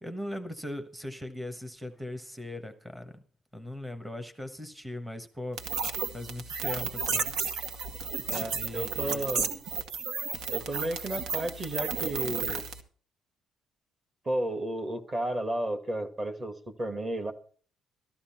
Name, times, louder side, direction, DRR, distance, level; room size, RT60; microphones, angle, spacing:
voice 1, 0.0-3.2 3.5-5.6 6.1-7.3 8.5-9.3, left 1 dB, 5° right, 6 dB, 1.2 m, -39 dB
sound 1, 5.6-12.8, right 5 dB, 80° right, 1.9 m, -33 dB
voice 2, 8.3-9.5 10.5-12.7 14.2-17.3, right 1 dB, 20° right, 8 dB, 1.7 m, -33 dB
14.0 x 13.5 x 4.4 m, 0.42 s
cardioid pair, 175°, 0 cm